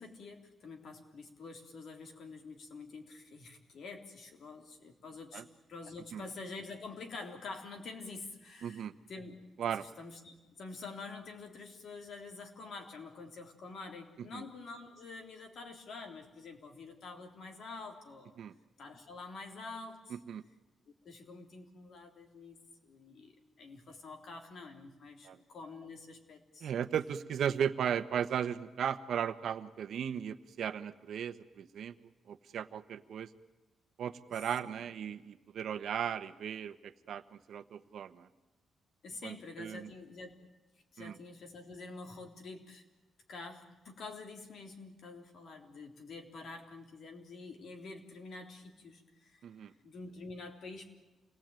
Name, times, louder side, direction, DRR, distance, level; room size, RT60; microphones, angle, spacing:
voice 1, 0.0-9.4 9.7-18.4 18.8-20.2 21.0-23.3 23.6-26.7 34.3-34.7 39.0-40.3 40.9-42.8 43.3-49.4 49.8-50.9, left 3 dB, 60° left, 4 dB, 3.6 m, -47 dB
voice 2, 8.6-8.9 9.6-9.8 14.3-14.4 18.4-18.5 20.3-20.4 25.2-25.4 26.6-31.9 32.3-33.3 34.0-38.3 39.2-39.9 41.0-41.2 49.4-49.7, right 8 dB, 65° right, 11 dB, 1.1 m, -36 dB
28.0 x 19.5 x 9.1 m, 1.1 s
wide cardioid pair, 155°, 0 cm